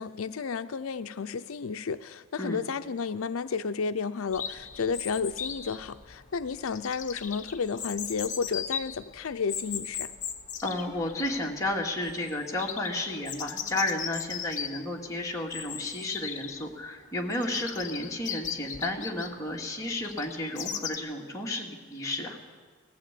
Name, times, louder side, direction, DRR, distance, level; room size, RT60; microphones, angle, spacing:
voice 1, 0.0-10.1, left 5 dB, 90° left, 11 dB, 0.5 m, -32 dB
Chirp tweet, 4.3-21.0, left 8 dB, 40° left, 1.2 m, -38 dB
voice 2, 10.6-22.4, left 1 dB, 15° left, -2 dB, 2.4 m, -32 dB
20.0 x 15.5 x 8.4 m, 1.5 s
head